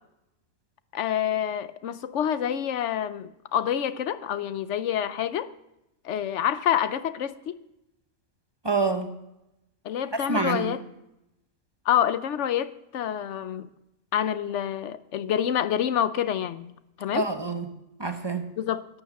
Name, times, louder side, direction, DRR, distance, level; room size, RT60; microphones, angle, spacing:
voice 1, 0.9-5.5 6.0-7.6 9.8-10.8 11.9-13.7 14.1-16.7 17.0-17.3 18.6-18.9, left 10 dB, 60° left, 1.0 m, -27 dB
voice 2, 8.6-9.1 10.1-10.8 17.1-17.7 18.0-18.5, right 4 dB, 20° right, 1.0 m, -27 dB
12.0 x 9.7 x 7.1 m
omnidirectional pair, 1.5 m